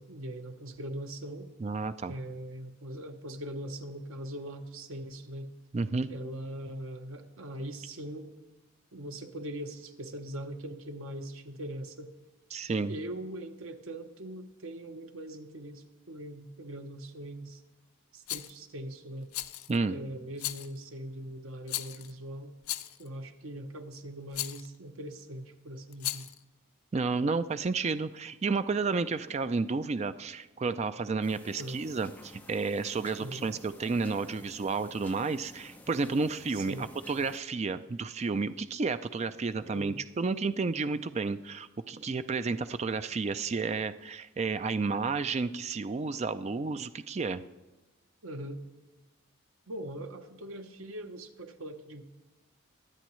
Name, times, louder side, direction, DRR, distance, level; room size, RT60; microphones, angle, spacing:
voice 1, 0.0-1.5 2.1-5.5 6.1-8.3 8.9-12.1 12.9-17.6 18.1-19.3 19.9-22.5 23.0-26.3 31.5-31.8 33.2-33.4 36.5-36.8 39.7-40.0 48.2-48.6 49.7-52.0, right 1 dB, 75° right, 6 dB, 1.0 m, -41 dB
voice 2, 1.6-2.1 5.7-6.1 12.5-12.9 19.7-20.0 26.9-47.4, right 4 dB, 30° right, 12 dB, 0.3 m, -31 dB
Rattle, 18.3-18.6 19.3-19.8 20.4-20.8 21.7-22.1 22.6-23.1 24.3-24.7 25.9-26.4, left 15 dB, 85° left, 0.5 m, -36 dB
sound 1, 31.2-37.4, left 1 dB, 10° left, 0.7 m, -52 dB
23.0 x 8.6 x 3.1 m, 1.1 s
head